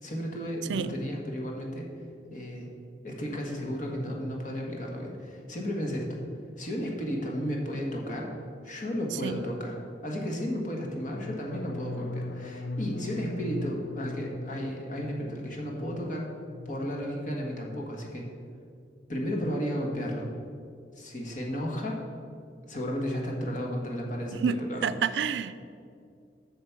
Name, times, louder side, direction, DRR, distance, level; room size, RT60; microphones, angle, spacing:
voice 1, 0.0-1.9 2.3-2.7 3.0-6.2 6.6-8.3 8.6-16.3 16.6-18.3 19.1-20.3 20.9-22.0 22.7-25.3, equal, 45° left, 0 dB, 1.5 m, -33 dB
sound 1, 11.0-16.9 17.2-17.7 18.0-18.4, left 2 dB, 90° left, 0.4 m, -40 dB
voice 2, 24.3-25.6, right 6 dB, 90° right, 14 dB, 0.4 m, -29 dB
8.0 x 6.6 x 5.9 m, 2.3 s
head